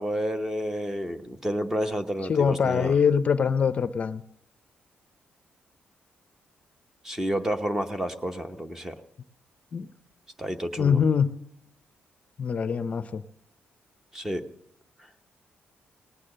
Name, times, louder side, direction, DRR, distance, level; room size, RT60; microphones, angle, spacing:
voice 1, 0.0-2.9 7.0-8.9 10.4-11.0 14.1-14.4, equal, 10° right, 8 dB, 0.8 m, -30 dB
voice 2, 2.3-4.2 9.7-9.9 10.8-11.4 12.4-13.2, left 6 dB, 35° left, 12 dB, 0.5 m, -23 dB
19.0 x 8.4 x 7.6 m, 0.77 s
wide cardioid pair, 160°, 4 cm